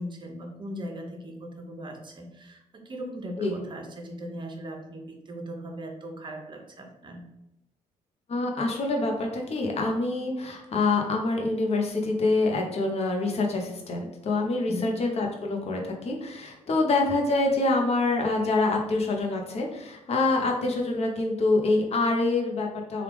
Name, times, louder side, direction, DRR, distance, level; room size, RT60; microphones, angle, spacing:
voice 1, 0.0-7.2 14.7-14.9, equal, 35° right, 2 dB, 0.8 m, -39 dB
voice 2, 8.3-23.0, left 2 dB, 50° left, 1 dB, 0.7 m, -26 dB
3.3 x 2.4 x 3.4 m, 0.89 s
cardioid pair, 75°, 14 cm